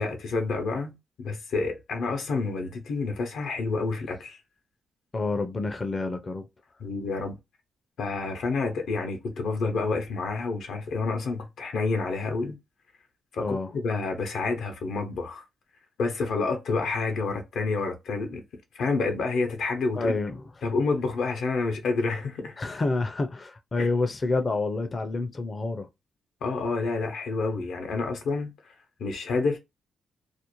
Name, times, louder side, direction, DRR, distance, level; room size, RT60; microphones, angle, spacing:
voice 1, 0.0-4.4 6.8-7.4 8.0-12.6 13.3-15.4 16.0-18.4 18.7-20.1 20.6-22.6 23.8-23.9 26.4-28.7 29.0-29.6, left 3 dB, 80° left, 0.6 m, -29 dB
voice 2, 5.1-6.5 13.4-13.7 20.0-20.4 22.6-25.9, left 3 dB, 40° left, 0.5 m, -28 dB
2.5 x 2.0 x 2.9 m
cardioid pair, 60°, 0 cm